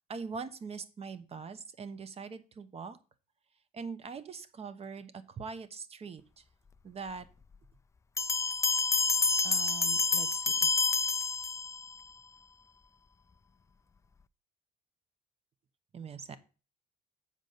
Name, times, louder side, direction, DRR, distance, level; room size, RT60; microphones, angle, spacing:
voice 1, 0.1-3.0 3.7-6.4 6.8-7.3 9.4-10.7 15.9-16.4, right 5 dB, 35° right, 12 dB, 1.0 m, -42 dB
Bell, 8.2-11.9, left 4 dB, 15° left, 0.4 m, -28 dB
7.4 x 5.3 x 6.5 m, 0.34 s
cardioid pair, 110°, 17 cm